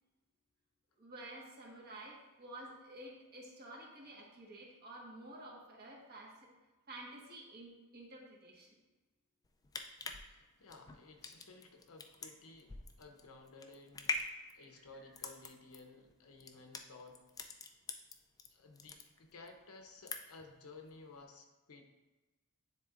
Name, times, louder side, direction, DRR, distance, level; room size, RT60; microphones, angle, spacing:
voice 1, 1.0-6.4 6.9-8.7 14.8-14.9, right 1 dB, 45° right, -3 dB, 1.4 m, -51 dB
sound 1, 9.4-18.5 18.8-19.5 19.8-20.5 20.9-21.0, left 3 dB, 15° left, 0.4 m, -44 dB
voice 2, 10.0-14.3 14.5-17.2 18.5-21.8, left 3 dB, 70° left, 4 dB, 0.8 m, -56 dB
9.6 x 4.1 x 2.5 m, 1.1 s
head